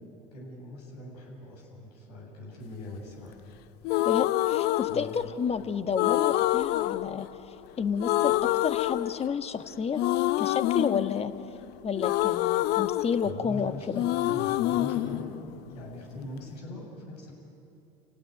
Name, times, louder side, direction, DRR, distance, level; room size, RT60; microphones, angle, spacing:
voice 1, 0.3-3.4 4.9-5.1 13.2-13.9 14.2-15.3 15.7-17.3, left 1 dB, 80° left, -1 dB, 8.0 m, -41 dB
sound 1, 3.8-5.5 6.0-7.7 8.0-9.6 10.0-13.7 13.9-16.0, left 16 dB, 55° left, 0.6 m, -27 dB
voice 2, 4.0-7.3 7.8-10.0 10.4-11.3 11.8-14.0, left 6 dB, 30° left, 9 dB, 1.5 m, -30 dB
29.0 x 17.5 x 9.5 m, 2.8 s
hypercardioid pair, 75°, 20 cm